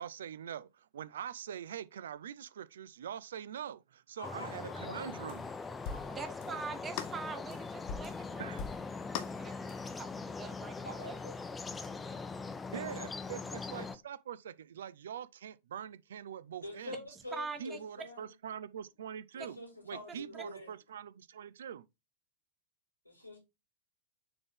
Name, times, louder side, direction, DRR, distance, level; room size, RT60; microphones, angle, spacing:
voice 1, 0.0-5.5 8.4-8.6 12.7-17.0 17.6-19.6 19.9-21.8, right 9 dB, 65° right, 0.5 m, -44 dB
voice 2, 4.2-5.3 5.9-6.2 6.5-6.6 10.8-11.4 16.6-18.3 19.3-20.7 23.0-23.4, left 1 dB, 85° left, 2.4 m, -46 dB
sound 1, 4.2-14.0, left 4 dB, 15° left, 0.7 m, -42 dB
sound 2, 5.3-5.5 5.9-6.2 6.4-6.6 7.0-8.3 8.6-9.9, left 7 dB, 45° left, 0.8 m, -42 dB
voice 3, 6.1-8.5 9.4-10.1 10.4-11.2 12.0-12.2 12.7-12.8 17.3-17.8 20.3-20.4, right 5 dB, 20° right, 1.1 m, -43 dB
6.8 x 3.9 x 3.6 m
figure-of-eight pair, 90°, 0 cm